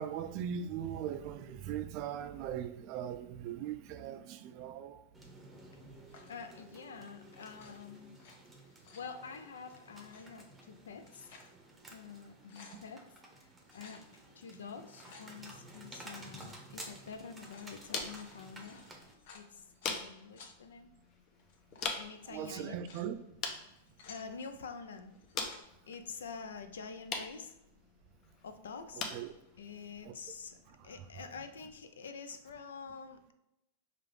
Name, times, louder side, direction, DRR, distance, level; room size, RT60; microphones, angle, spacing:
voice 1, 0.0-5.0 22.3-23.2 29.1-29.3 30.0-30.1 30.8-30.9, right 9 dB, 50° right, 0.3 m, -39 dB
sound 1, 5.1-19.1, right 1 dB, 10° right, 0.7 m, -53 dB
sound 2, 6.1-6.4 7.4-8.3 8.7-9.1 9.9-10.2 10.9-11.5 12.0-12.1 12.3-12.8 13.7-14.0 14.7-15.3 16.3-16.6 17.3-20.0 20.4-20.5 21.4-22.0 22.6-23.1 23.7-24.3 25.2-25.6, left 4 dB, 65° left, 0.8 m, -56 dB
voice 2, 6.3-8.2 8.9-11.4 11.9-13.1 13.4-19.1 19.3-20.9 21.9-22.8 24.1-25.1 25.9-27.5 28.4-29.1 29.6-30.6 30.8-33.3, left 5 dB, 90° left, 0.4 m, -47 dB
sound 3, 16.7-31.7, left 4 dB, 35° left, 0.6 m, -45 dB
4.9 x 2.4 x 3.1 m
hypercardioid pair, 125°, 0 cm